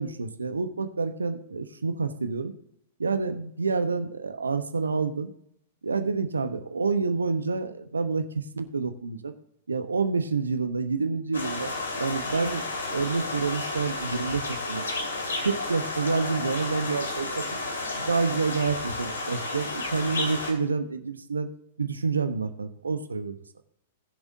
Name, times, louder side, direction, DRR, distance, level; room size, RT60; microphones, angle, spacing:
voice 1, 0.0-2.5 3.0-5.3 5.8-9.3 9.7-12.6 12.9-14.8 15.4-17.5 18.0-21.5 21.8-23.4, right 4 dB, 80° right, 9 dB, 1.0 m, -28 dB
sound 1, 11.3-20.5, left 2 dB, 75° left, 2.5 m, -32 dB
19.0 x 7.1 x 2.7 m, 0.73 s
figure-of-eight pair, 105°, 0 cm